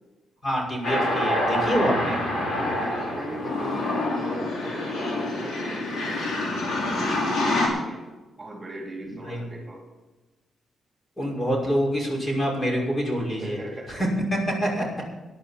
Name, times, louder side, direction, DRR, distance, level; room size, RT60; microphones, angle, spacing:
voice 1, 0.4-2.2 9.2-9.4 11.2-13.6 13.9-14.9, equal, 25° left, 0 dB, 5.8 m, -26 dB
sound 1, 0.8-7.7, left 1 dB, 65° left, 4.6 m, -26 dB
voice 2, 1.8-8.0 8.4-9.8 13.4-14.0, right 1 dB, 25° right, 0 dB, 3.4 m, -39 dB
18.0 x 11.0 x 4.3 m, 1.2 s
cardioid pair, 100°, 0 cm